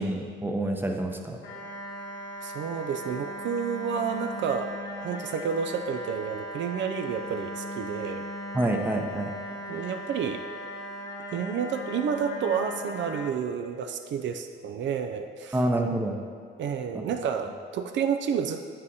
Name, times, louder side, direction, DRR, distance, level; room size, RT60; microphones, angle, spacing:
voice 1, 0.0-1.4 8.5-9.3 15.5-16.2 16.9-17.0, right 1 dB, 10° right, 3 dB, 0.7 m, -27 dB
sound 1, 1.4-13.3, left 1 dB, 65° left, 0.9 m, -38 dB
voice 2, 2.4-4.7 5.0-8.2 9.7-10.4 11.3-15.6 16.6-18.6, right 7 dB, 70° right, 6 dB, 0.4 m, -30 dB
7.9 x 7.5 x 2.8 m, 2.1 s
cardioid pair, 90°, 20 cm